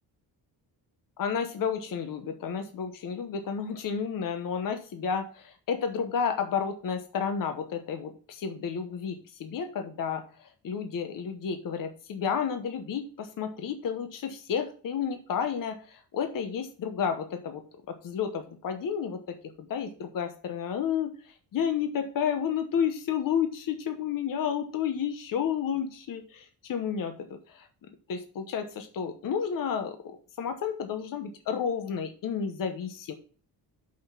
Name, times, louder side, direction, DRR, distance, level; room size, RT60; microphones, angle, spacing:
voice 1, 1.2-27.7 28.1-33.1, left 7 dB, 55° left, 7 dB, 1.0 m, -31 dB
6.4 x 5.7 x 5.9 m, 0.41 s
wide cardioid pair, 175°, 40 cm